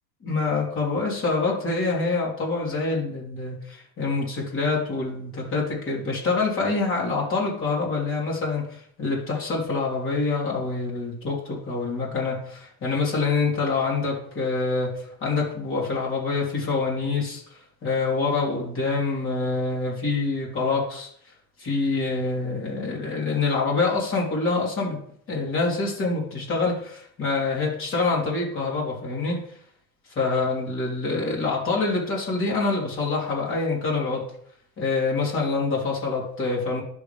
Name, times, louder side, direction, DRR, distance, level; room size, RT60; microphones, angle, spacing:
voice 1, 0.2-17.4 17.8-21.1 21.6-25.0 25.3-29.4 30.2-34.3 34.8-36.8, left 3 dB, 35° left, -4 dB, 3.5 m, -26 dB
10.5 x 6.9 x 3.6 m, 0.64 s
cardioid pair, 170°, 35 cm